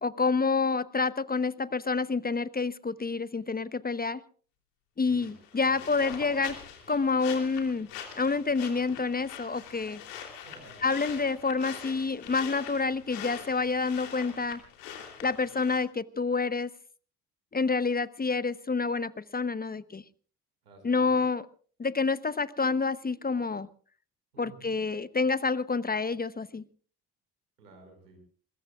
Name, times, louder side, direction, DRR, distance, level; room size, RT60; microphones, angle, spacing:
voice 1, 0.0-4.2 5.0-6.6 6.9-7.9 8.2-10.0 10.8-14.6 15.2-16.7 17.5-20.0 20.8-21.5 21.8-23.7 24.4-26.6, left 4 dB, 20° left, 16 dB, 0.9 m, -28 dB
sound 1, 5.1-15.8, left 8 dB, 80° left, 3.3 m, -44 dB
voice 2, 5.1-5.9 10.4-10.9 20.6-21.2 24.3-24.8 27.6-28.2, right 2 dB, 90° right, 5 dB, 5.3 m, -53 dB
25.5 x 21.5 x 2.4 m, 0.42 s
hypercardioid pair, 50°, 46 cm